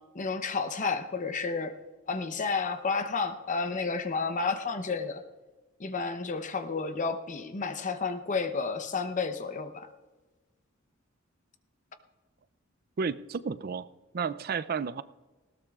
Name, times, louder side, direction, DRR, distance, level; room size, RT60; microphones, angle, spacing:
voice 1, 0.1-1.7 2.1-5.2 5.8-9.9, left 4 dB, 40° left, 8 dB, 0.8 m, -31 dB
voice 2, 13.0-13.9 14.1-15.0, right 5 dB, 50° right, 15 dB, 0.4 m, -32 dB
19.0 x 17.5 x 2.4 m, 1.2 s
head